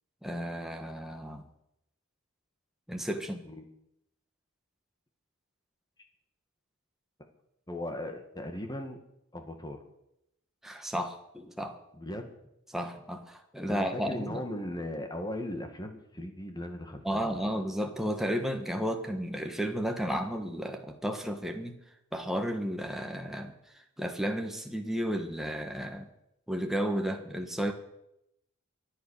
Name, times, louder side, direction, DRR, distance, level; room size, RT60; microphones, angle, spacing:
voice 1, 0.2-1.4 2.9-3.4 10.6-11.8 12.7-14.4 17.0-21.7 22.1-23.5 24.0-26.1 26.5-27.7, equal, ahead, 4 dB, 1.3 m, -33 dB
voice 2, 7.7-9.0 9.3-9.8 12.0-12.3 13.7-17.4, left 1 dB, 20° left, 6 dB, 1.9 m, -38 dB
23.5 x 8.4 x 6.5 m, 0.82 s
head